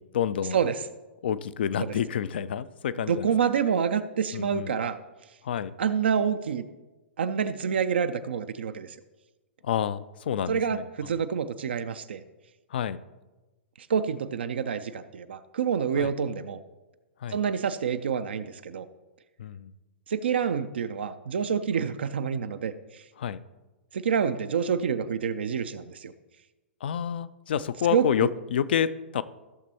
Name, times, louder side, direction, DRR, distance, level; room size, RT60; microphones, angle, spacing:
voice 1, 0.1-0.6 1.2-3.3 4.3-4.7 5.4-5.7 9.6-10.8 12.7-13.0 16.0-16.1 17.2-17.4 19.4-19.7 23.2-23.4 26.8-29.2, left 9 dB, 55° left, 16 dB, 0.4 m, -28 dB
voice 2, 3.1-5.0 5.8-6.7 7.2-9.0 10.5-12.2 13.8-16.6 17.3-18.9 20.1-23.0 23.9-26.1 27.9-28.3, right 7 dB, 60° right, 10 dB, 0.4 m, -27 dB
15.0 x 6.6 x 2.8 m, 1.1 s
figure-of-eight pair, 110°, 6 cm